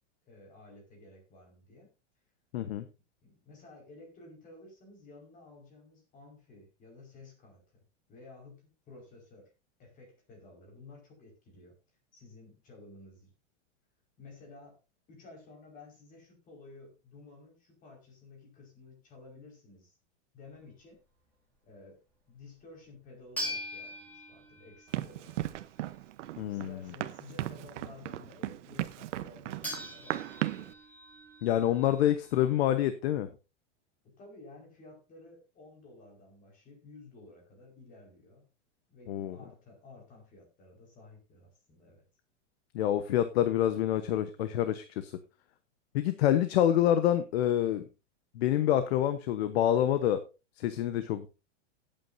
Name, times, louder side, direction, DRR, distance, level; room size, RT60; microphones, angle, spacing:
voice 1, 0.3-1.9 2.6-2.9 3.2-7.8 8.1-9.5 9.8-11.7 12.1-13.3 14.2-14.8 15.1-20.0 20.3-21.0 21.6-22.0 22.3-25.4 26.4-30.7 34.0-38.5 38.9-42.0, left 3 dB, 20° left, 1 dB, 5.1 m, -53 dB
voice 2, 2.5-2.8 26.4-26.8 31.4-33.3 39.1-39.4 42.7-45.1 45.9-47.9 48.3-50.2 50.6-51.3, left 11 dB, 60° left, 11 dB, 1.1 m, -27 dB
sound 1, 23.4-25.4 29.6-32.7, left 1 dB, 5° left, 3.8 m, -42 dB
Run, 24.9-30.7, right 14 dB, 80° right, 1.0 m, -37 dB
17.5 x 9.0 x 2.7 m, 0.29 s
supercardioid pair, 170°, 36 cm